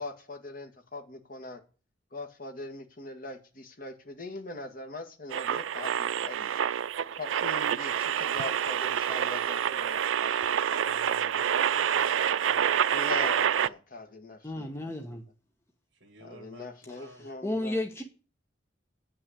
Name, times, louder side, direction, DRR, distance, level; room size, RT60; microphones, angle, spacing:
voice 1, 0.0-1.6 2.1-6.6 7.2-10.6 12.9-15.2 16.2-17.8, left 2 dB, 45° left, 4 dB, 1.7 m, -41 dB
sound 1, 5.3-13.7, right 9 dB, 85° right, 0.4 m, -27 dB
voice 2, 10.8-12.7 15.9-17.3, right 2 dB, 65° right, 1 dB, 2.3 m, -53 dB
voice 3, 14.4-15.2 17.4-18.0, left 1 dB, 15° left, 3 dB, 1.0 m, -32 dB
9.6 x 6.0 x 8.4 m, 0.36 s
head